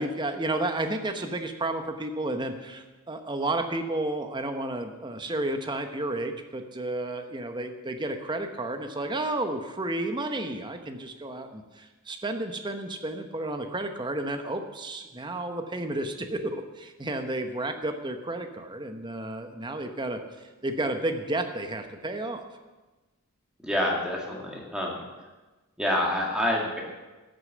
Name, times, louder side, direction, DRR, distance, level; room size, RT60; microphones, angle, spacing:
voice 1, 0.0-20.2 20.6-22.4, right 2 dB, 20° right, 6 dB, 0.9 m, -32 dB
voice 2, 23.6-25.1 25.8-26.8, left 1 dB, 5° right, -2 dB, 2.0 m, -27 dB
12.5 x 6.8 x 7.6 m, 1.2 s
head